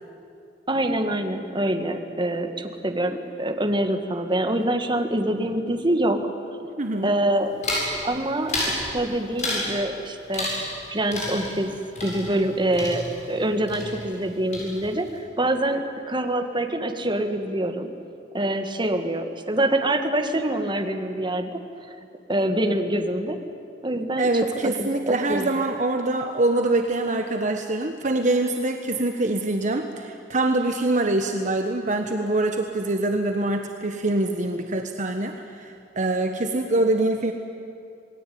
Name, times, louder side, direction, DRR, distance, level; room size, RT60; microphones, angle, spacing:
voice 1, 0.7-6.2 7.0-7.5 8.0-10.5 10.9-11.7 12.0-15.8 16.1-17.9 18.3-21.6 22.3-23.4 23.8-24.3 24.6-25.5, right 1 dB, 25° right, 5 dB, 1.9 m, -25 dB
voice 2, 6.8-7.1 24.2-37.3, right 2 dB, 45° right, 5 dB, 1.3 m, -24 dB
sound 1, 7.6-7.9 8.5-8.8 9.4-9.8 10.3-10.8 11.1-13.4 13.7-14.3 14.5-15.1, left 1 dB, 40° left, 7.8 m, -30 dB
27.5 x 20.0 x 9.5 m, 2.4 s
head